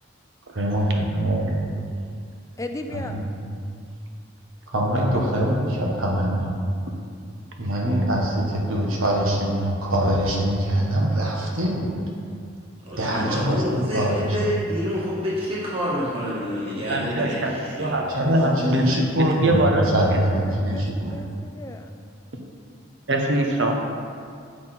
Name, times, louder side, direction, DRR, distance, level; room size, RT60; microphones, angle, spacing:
voice 1, 0.5-1.6 2.9-3.2 4.7-6.5 7.6-11.9 13.0-14.3 17.1-17.2 18.1-21.1, equal, 85° right, -2 dB, 1.3 m, -23 dB
voice 2, 2.6-3.3 19.8-22.0, left 2 dB, 15° left, 5 dB, 0.3 m, -36 dB
voice 3, 12.8-18.3, equal, 25° right, -8 dB, 1.8 m, -28 dB
voice 4, 16.9-19.9 23.1-23.7, right 2 dB, 60° right, 2 dB, 0.9 m, -24 dB
7.4 x 6.1 x 4.4 m, 2.3 s
head